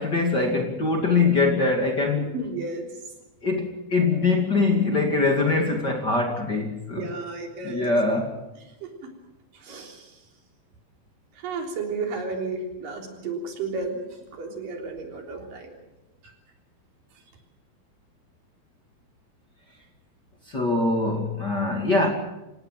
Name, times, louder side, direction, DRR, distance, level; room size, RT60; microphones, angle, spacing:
voice 1, 0.0-2.3 3.4-7.1 7.6-8.3 20.5-22.1, left 3 dB, 30° left, 2 dB, 2.5 m, -23 dB
voice 2, 2.2-2.9 6.9-7.9 8.8-9.1 9.6-10.1 11.4-14.0 14.3-15.8, right 4 dB, 65° right, 2 dB, 5.1 m, -33 dB
27.0 x 17.5 x 7.6 m, 0.96 s
omnidirectional pair, 4.3 m